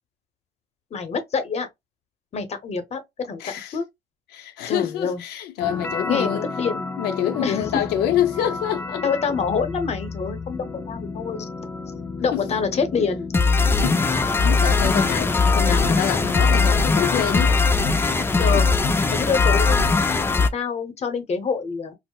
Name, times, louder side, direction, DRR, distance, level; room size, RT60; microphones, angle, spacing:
voice 1, 0.9-1.7 2.3-3.4 3.7-3.8 4.7-5.2 6.1-6.9 7.4-7.7 9.0-11.5 12.2-13.3 18.4-18.7 19.1-19.8 20.5-22.0, left 5 dB, 40° left, 0.7 m, -26 dB
voice 2, 3.4-3.8 4.3-6.5 7.0-9.0 12.3-12.4 13.6-17.6 18.5-18.7, left 11 dB, 80° left, 0.6 m, -26 dB
sound 1, 5.6-20.5, left 4 dB, 15° left, 0.3 m, -22 dB
4.5 x 2.0 x 2.3 m
cardioid pair, 110°, 17 cm